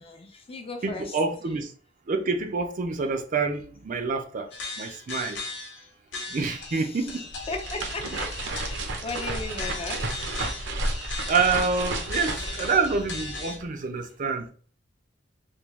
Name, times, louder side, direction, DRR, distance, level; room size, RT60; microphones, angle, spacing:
voice 1, 0.0-1.2 5.8-5.9 6.7-7.1 7.5-10.0, left 3 dB, 30° left, 0.5 m, -36 dB
voice 2, 0.8-1.7 2.1-4.5 4.8-5.4 6.3-7.3 11.3-14.5, right 4 dB, 45° right, 0.5 m, -27 dB
sound 1, 4.5-5.8 6.1-13.6, left 3 dB, 75° left, 0.9 m, -38 dB
sound 2, 7.3-13.6, right 2 dB, 75° right, 0.7 m, -32 dB
3.4 x 2.3 x 3.0 m
head